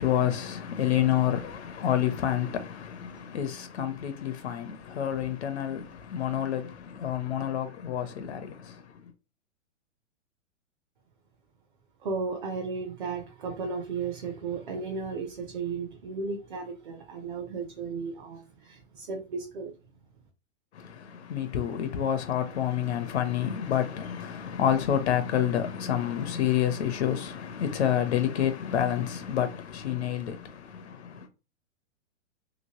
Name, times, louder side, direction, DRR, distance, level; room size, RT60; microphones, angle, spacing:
voice 1, 0.0-9.0 20.7-31.3, left 10 dB, 60° left, 0.6 m, -28 dB
voice 2, 12.0-19.7, right 4 dB, 40° right, 0.5 m, -34 dB
3.0 x 2.9 x 2.8 m
hypercardioid pair, 175°, 38 cm